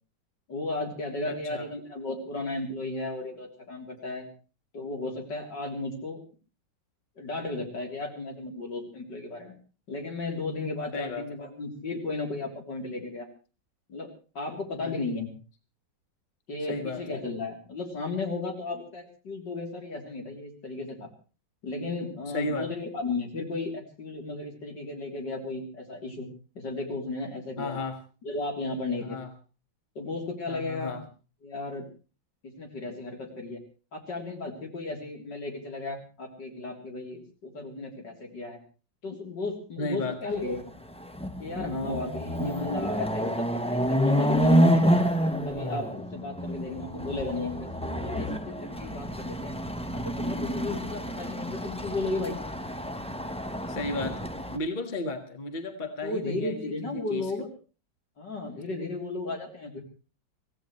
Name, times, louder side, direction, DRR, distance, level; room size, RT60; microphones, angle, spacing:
voice 1, 0.5-4.3 4.7-6.2 7.2-9.5 9.9-13.3 13.9-15.3 16.5-21.1 21.6-26.3 26.6-27.8 28.2-29.2 30.0-31.0 31.4-31.9 32.4-33.6 33.9-38.6 39.0-40.7 41.4-45.1 45.4-49.6 49.9-52.4 56.0-57.5 58.2-59.8, left 3 dB, 65° left, 2 dB, 4.1 m, -34 dB
voice 2, 1.3-1.7 10.9-11.2 14.7-14.9 16.7-17.2 22.3-22.7 27.6-28.0 29.0-29.3 30.5-31.0 39.8-40.2 42.4-42.7 53.7-54.3 54.5-57.2, left 2 dB, 25° left, 6 dB, 1.7 m, -34 dB
Chatter / Car passing by / Motorcycle, 40.5-40.6 41.0-54.6, equal, 10° left, 0.4 m, -28 dB
24.5 x 16.5 x 3.2 m, 0.35 s
omnidirectional pair, 2.0 m